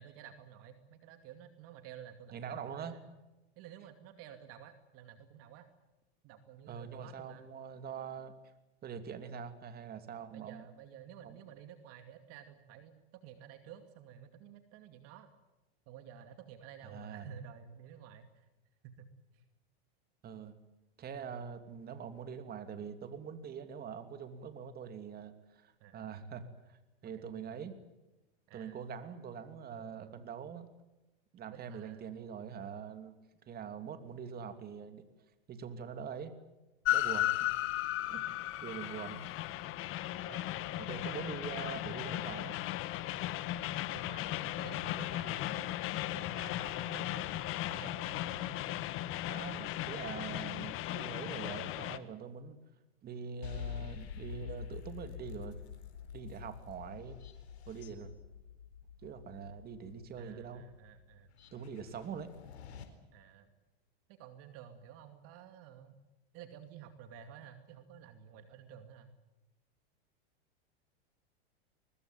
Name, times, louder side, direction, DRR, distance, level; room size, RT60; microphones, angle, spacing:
voice 1, 0.0-3.1 3.6-5.7 6.2-7.5 10.3-15.3 15.9-18.5 18.8-19.1 19.3-19.4 21.2-21.3 25.8-26.1 27.0-27.2 28.5-28.8 29.7-30.2 31.4-32.1 40.3-41.3 43.9-45.7 46.0-47.4 47.7-48.7 60.2-61.3 63.1-63.5 64.1-66.0 66.3-69.1, right 9 dB, 45° right, 8 dB, 2.5 m, -52 dB
voice 2, 2.3-2.9 6.7-8.3 8.8-10.6 11.2-11.4 16.8-17.3 20.2-20.5 21.0-27.7 28.5-30.7 31.3-33.1 33.5-35.0 35.5-36.3 36.9-37.5 38.1-39.2 40.8-42.6 49.3-52.6 53.0-55.6 56.1-57.2 57.7-58.1 59.0-60.7 61.5-62.3, right 7 dB, 30° right, 9 dB, 2.9 m, -44 dB
Train, 36.8-52.0, left 15 dB, 40° left, 1.6 m, -36 dB
sound 1, 53.4-62.8, left 9 dB, 80° left, 4.5 m, -47 dB
23.0 x 21.0 x 9.1 m, 1.0 s
hypercardioid pair, 115°, 32 cm